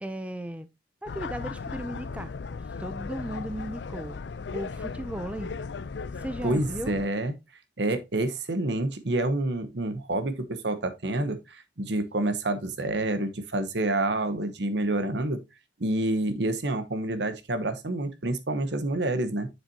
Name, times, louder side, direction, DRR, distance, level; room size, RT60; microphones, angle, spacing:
voice 1, 0.0-0.7 1.0-2.3 2.8-4.2 4.5-5.5 6.1-6.9, right 1 dB, 5° right, 0.4 m, -36 dB
sound 1, 1.1-7.1, left 4 dB, 70° left, 0.5 m, -37 dB
voice 2, 6.4-7.3 7.8-15.4 15.8-19.5, right 2 dB, 70° right, 1.0 m, -28 dB
7.4 x 6.6 x 2.7 m
head